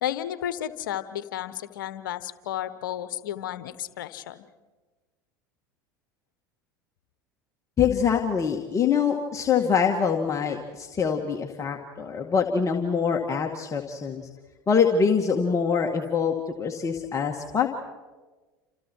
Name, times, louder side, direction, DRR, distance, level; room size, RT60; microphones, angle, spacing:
voice 1, 0.0-4.5, left 11 dB, 75° left, 13 dB, 1.2 m, -32 dB
voice 2, 7.8-14.3 14.7-16.3 16.6-17.7, left 6 dB, 30° left, 2 dB, 2.0 m, -24 dB
29.5 x 27.5 x 4.7 m, 1.3 s
hypercardioid pair, 80°, 11 cm